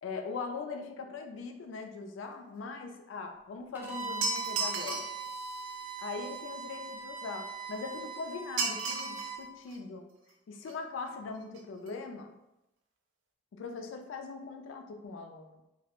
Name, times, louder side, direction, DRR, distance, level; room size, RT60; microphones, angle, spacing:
voice 1, 0.0-5.0 6.0-10.1 10.5-12.4 13.5-15.6, left 4 dB, 80° left, 5 dB, 0.3 m, -41 dB
Bowed string instrument, 3.7-9.4, right 5 dB, 10° right, 0.4 m, -41 dB
sound 1, 4.2-5.2 8.6-9.3 9.7-9.8 10.7-10.8 11.1-11.2 11.4-11.6 11.9-12.0, right 4 dB, 90° right, 0.4 m, -33 dB
2.2 x 2.1 x 2.9 m, 0.91 s
head